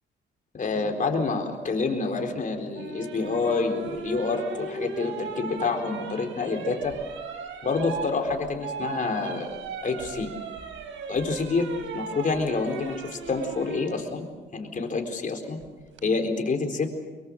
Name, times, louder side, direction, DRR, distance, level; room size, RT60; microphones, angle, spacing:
voice 1, 0.5-7.0 7.6-10.3 11.1-15.6 16.0-16.9, left 4 dB, 40° left, 4 dB, 4.1 m, -28 dB
sound 1, 2.7-13.9 15.6-16.0, right 5 dB, 85° right, 3.9 m, -37 dB
24.0 x 23.0 x 6.6 m, 1.3 s
cardioid pair, 90°, 20 cm